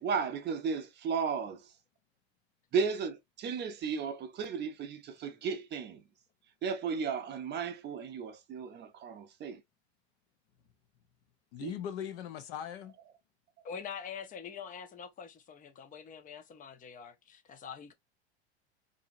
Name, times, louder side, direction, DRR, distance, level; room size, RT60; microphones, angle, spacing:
voice 1, 0.0-1.6 2.7-6.0 6.6-9.6 11.6-11.7, right 5 dB, 30° right, 0.6 m, -34 dB
voice 2, 11.5-13.0, left 9 dB, 60° left, 0.8 m, -40 dB
voice 3, 13.6-17.9, left 7 dB, 25° left, 0.5 m, -45 dB
2.8 x 2.7 x 2.5 m
hypercardioid pair, 105°, 33 cm